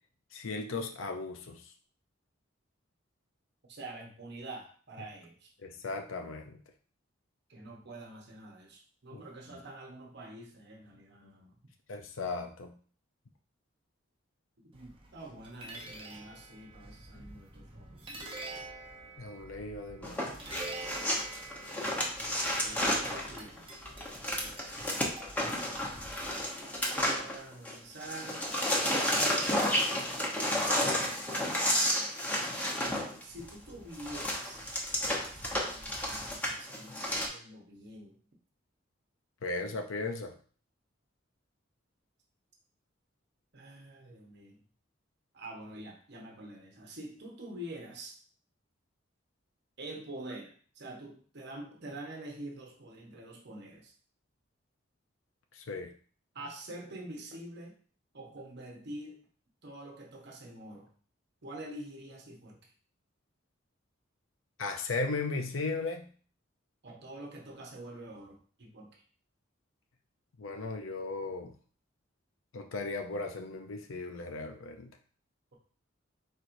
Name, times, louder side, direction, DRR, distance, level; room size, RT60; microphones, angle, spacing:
voice 1, 0.3-1.6 5.6-6.6 9.1-9.2 9.5-9.6 11.9-12.8 19.2-20.4 39.4-40.3 55.5-55.9 64.6-66.1 70.4-71.5 72.5-74.9, left 3 dB, 90° left, 5 dB, 0.6 m, -36 dB
voice 2, 3.7-5.5 7.5-11.5 14.6-18.2 21.8-22.0 22.6-23.9 26.9-28.5 33.2-38.2 43.5-44.6 45.3-48.2 49.8-53.9 56.3-57.7 58.1-59.2 59.6-60.9 61.4-62.7 66.8-69.0, right 1 dB, 60° right, 1 dB, 1.0 m, -46 dB
sound 1, 14.7-26.8, right 2 dB, 25° right, 0.8 m, -47 dB
sound 2, 20.0-27.7 28.0-37.3, left 1 dB, 10° left, 0.9 m, -31 dB
4.5 x 4.3 x 2.6 m, 0.43 s
head